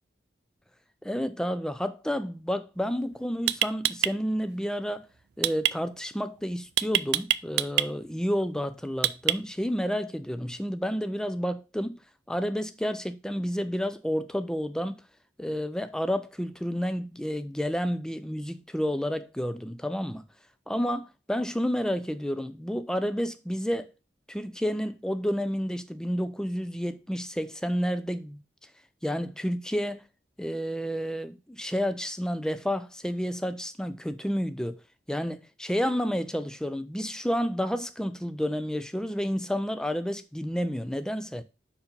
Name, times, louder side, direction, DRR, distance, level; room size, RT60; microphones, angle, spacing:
voice 1, 1.0-5.1 5.4-12.0 12.3-15.0 15.4-20.2 20.7-23.9 24.3-28.7 29.0-30.0 30.4-34.8 35.1-41.4, equal, 5° left, 0.4 m, -30 dB
sound 1, 2.9-3.0 3.5-4.1 5.4-5.7 6.8-7.9 9.0-9.6, right 13 dB, 70° right, 0.3 m, -24 dB
5.2 x 4.8 x 5.4 m
head